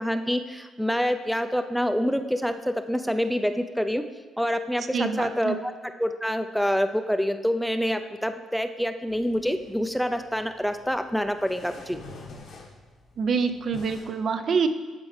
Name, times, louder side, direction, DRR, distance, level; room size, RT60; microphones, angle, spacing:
voice 1, 0.0-4.1 4.4-5.7 6.0-12.0, equal, ahead, 8 dB, 0.4 m, -26 dB
voice 2, 4.9-5.5 13.2-14.7, right 5 dB, 55° right, 8 dB, 0.5 m, -26 dB
sound 1, 9.1-14.1, left 3 dB, 70° left, 1.3 m, -47 dB
12.5 x 4.2 x 3.2 m, 1.5 s
cardioid pair, 90°, 0 cm